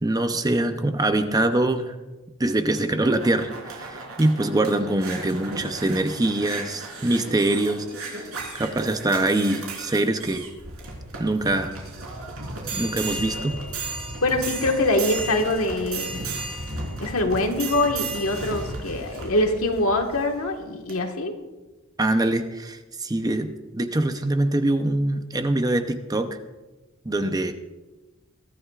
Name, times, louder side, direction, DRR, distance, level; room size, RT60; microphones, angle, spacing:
voice 1, 0.0-1.9 2.4-8.3 8.5-10.4 11.2-11.7 12.7-13.6 22.0-26.4 27.0-27.5, right 2 dB, 20° right, 8 dB, 0.6 m, -24 dB
sound 1, 2.7-20.3 20.9-21.0, right 3 dB, 80° right, 4.2 m, -34 dB
voice 2, 14.2-16.2 17.0-21.3, left 2 dB, 75° left, 3 dB, 1.6 m, -24 dB
22.5 x 13.0 x 2.4 m, 1.2 s
head